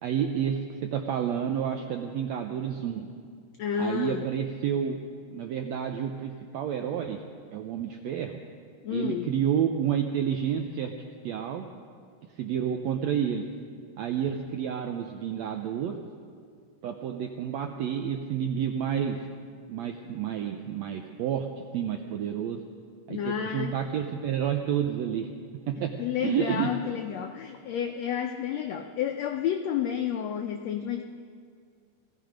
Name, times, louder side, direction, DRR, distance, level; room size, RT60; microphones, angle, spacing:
voice 1, 0.0-3.1 3.8-5.0 5.3-7.2 7.5-8.4 8.9-10.9 11.2-11.7 12.4-13.5 14.0-16.0 16.8-19.3 19.7-22.6 23.1-25.3 25.7-25.9 26.2-26.7, right 9 dB, 80° right, 4 dB, 1.6 m, -30 dB
voice 2, 3.6-4.3 8.8-9.3 23.1-23.8 26.0-31.0, left 8 dB, 90° left, 5 dB, 1.5 m, -30 dB
17.0 x 15.5 x 5.1 m, 2.1 s
omnidirectional pair, 3.8 m